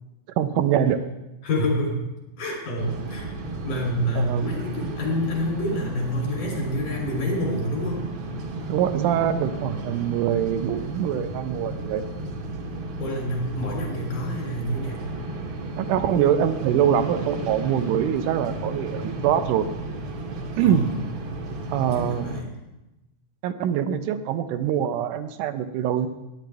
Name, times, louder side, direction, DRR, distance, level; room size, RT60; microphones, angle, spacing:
voice 1, 0.4-1.0 4.2-4.5 8.7-12.0 15.8-19.7 20.6-20.8 21.7-22.3 23.4-26.1, right 9 dB, 85° right, 10 dB, 2.2 m, -24 dB
voice 2, 1.4-2.0 2.4-3.3 3.6-8.0 13.0-15.0 20.6-20.9 21.9-22.4, equal, 90° left, -2 dB, 4.9 m, -27 dB
sound 1, 2.8-22.4, right 2 dB, 60° right, 1.4 m, -34 dB
16.5 x 9.5 x 3.5 m, 0.97 s
omnidirectional pair, 3.6 m